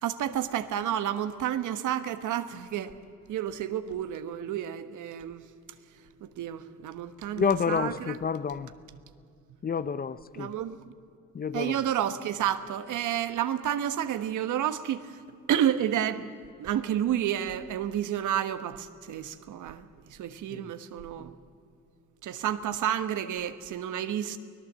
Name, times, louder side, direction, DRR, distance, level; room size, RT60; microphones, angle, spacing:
voice 1, 0.0-3.0 3.3-5.4 6.2-8.2 10.3-10.9 11.5-15.2 15.5-16.3 16.6-21.4 22.2-24.4, right 10 dB, 75° right, 1.2 m, -30 dB
voice 2, 7.4-8.7 9.6-10.5 11.3-11.7 20.5-20.6, left 6 dB, 30° left, 0.7 m, -29 dB
24.0 x 18.0 x 7.5 m
cardioid pair, 105°, 31 cm